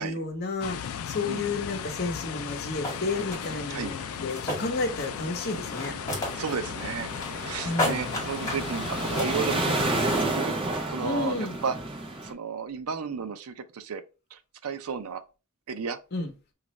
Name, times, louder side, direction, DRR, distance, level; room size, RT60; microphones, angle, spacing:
voice 1, 0.0-5.9 7.6-8.1 11.0-11.5 16.1-16.3, left 3 dB, 45° left, 0.8 m, -31 dB
sound 1, 0.6-10.2, left 8 dB, 70° left, 0.3 m, -36 dB
sound 2, 2.5-2.6 2.8-3.5 4.1-5.2 5.5-6.5 6.8-7.5 7.8-8.7 9.1-9.6, left 1 dB, 15° left, 1.8 m, -31 dB
sound 3, 2.9-12.3, right 2 dB, 25° right, 0.6 m, -32 dB
voice 2, 6.1-10.6 10.9-11.8 12.2-14.0 14.3-15.2 15.7-16.0, right 6 dB, 85° right, 0.5 m, -33 dB
5.1 x 2.5 x 3.1 m
head